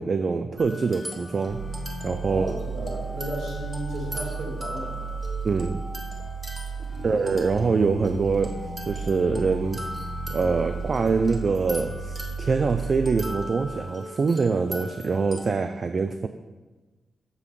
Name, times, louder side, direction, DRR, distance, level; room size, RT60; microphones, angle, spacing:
voice 1, 0.0-1.6 2.0-2.6 5.4-5.8 7.0-9.9 10.3-16.3, right 4 dB, 40° right, 8 dB, 0.3 m, -24 dB
sound 1, 0.6-15.5, equal, 10° right, 1.2 m, -40 dB
sound 2, 1.5-13.3, right 4 dB, 65° right, 1.6 m, -34 dB
voice 2, 2.2-5.1 6.9-7.2, equal, 80° right, -3 dB, 2.7 m, -34 dB
7.6 x 4.8 x 5.3 m, 1.3 s
wide cardioid pair, 120°, 0 cm